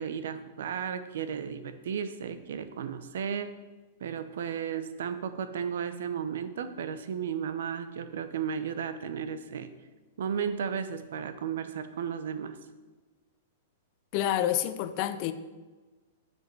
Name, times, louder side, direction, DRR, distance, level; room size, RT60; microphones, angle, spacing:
voice 1, 0.0-3.5 4.0-9.7 10.2-12.6, right 7 dB, 75° right, 11 dB, 0.7 m, -34 dB
voice 2, 14.1-15.3, left 12 dB, 45° left, 12 dB, 0.6 m, -28 dB
9.2 x 5.4 x 5.4 m, 1.3 s
hypercardioid pair, 140°, 0 cm